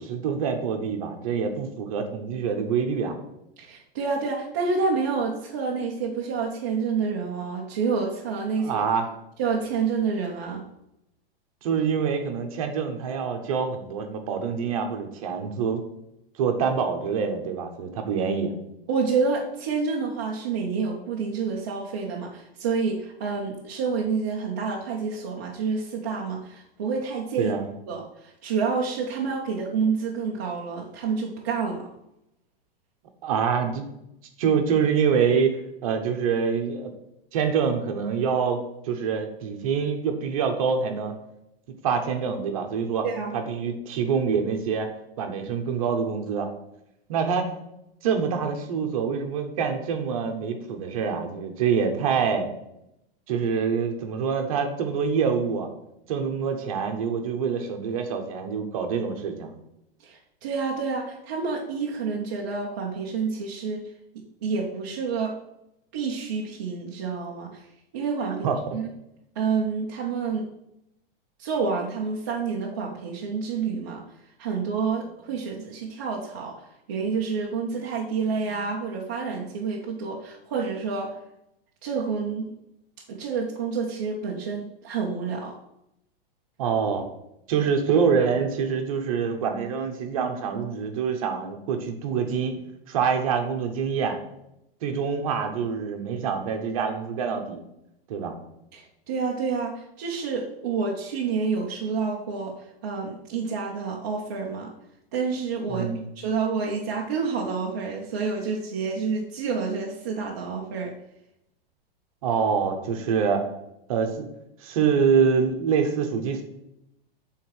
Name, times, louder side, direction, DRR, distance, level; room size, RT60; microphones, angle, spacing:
voice 1, 0.0-3.1 8.6-9.1 11.6-15.8 16.4-18.5 27.4-27.7 33.2-33.9 34.4-36.9 37.3-41.1 41.8-43.0 43.3-44.9 45.2-46.5 47.1-47.5 48.0-52.5 53.3-55.7 56.1-59.5 68.4-68.5 86.6-87.1 87.5-92.6 92.9-94.2 94.8-97.6 98.1-98.3 105.7-106.1 112.2-113.4 113.9-114.3 114.6-116.4, right 6 dB, 35° right, 4 dB, 0.8 m, -25 dB
voice 2, 3.6-8.8 9.4-10.7 18.9-27.5 27.9-31.9 43.0-43.4 60.0-63.9 64.4-65.4 65.9-67.6 67.9-68.5 68.7-68.9 69.4-70.5 71.4-74.0 74.4-81.1 81.8-82.5 83.1-85.6 98.7-104.7 105.1-110.9, right 5 dB, 20° right, -3 dB, 0.4 m, -28 dB
7.1 x 3.6 x 4.6 m, 0.83 s
supercardioid pair, 175°, 30 cm